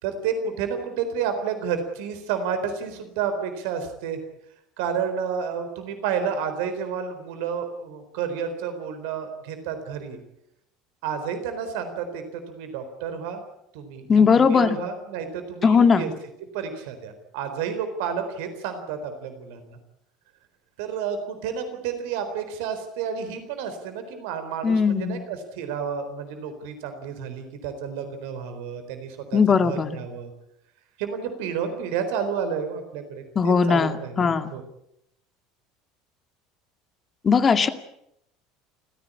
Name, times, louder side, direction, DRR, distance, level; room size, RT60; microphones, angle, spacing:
voice 1, 0.0-4.2 4.8-10.2 11.0-13.4 13.7-16.1 16.4-19.8 20.8-30.3 31.0-34.6, right 7 dB, 65° right, 9 dB, 4.1 m, -30 dB
voice 2, 14.1-14.8 15.6-16.1 24.6-25.2 29.3-30.0 33.4-34.5 37.2-37.7, left 5 dB, 30° left, 9 dB, 2.2 m, -19 dB
29.0 x 16.0 x 8.6 m, 0.80 s
hypercardioid pair, 70°, 0 cm